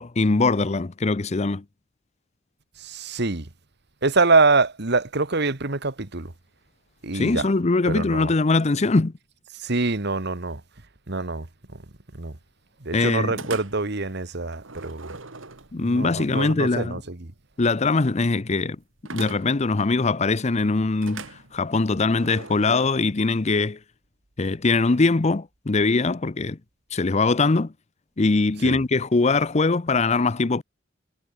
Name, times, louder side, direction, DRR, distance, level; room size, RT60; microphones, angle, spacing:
voice 1, 0.0-1.6 7.1-9.1 12.9-13.4 15.7-17.0 17.6-18.8 19.1-23.8 24.4-26.6 26.9-27.7 28.2-30.6, left 3 dB, 35° left, 0.6 m, -22 dB
voice 2, 2.8-3.5 4.0-6.3 7.0-7.5 7.9-8.3 9.6-10.6 11.1-11.5 12.1-12.4 12.8-15.2 15.8-17.3 28.6-28.8, right 3 dB, 60° right, 1.7 m, -24 dB
sound 1, 13.4-14.0 14.5-16.0 19.1-19.7 21.0-22.9, right 4 dB, 85° right, 2.7 m, -40 dB
head